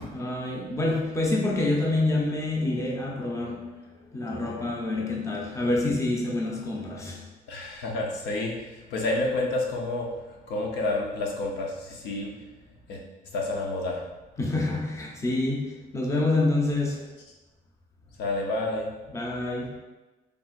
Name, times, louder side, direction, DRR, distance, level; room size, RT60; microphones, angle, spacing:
voice 1, 0.1-7.3 14.4-17.1 19.1-19.8, left 2 dB, 15° left, 0.7 m, -27 dB
voice 2, 7.5-12.4 12.9-13.0 13.3-14.0 18.2-18.9, left 2 dB, 80° left, 0.8 m, -29 dB
4.2 x 3.5 x 2.5 m
cardioid pair, 110°, 17 cm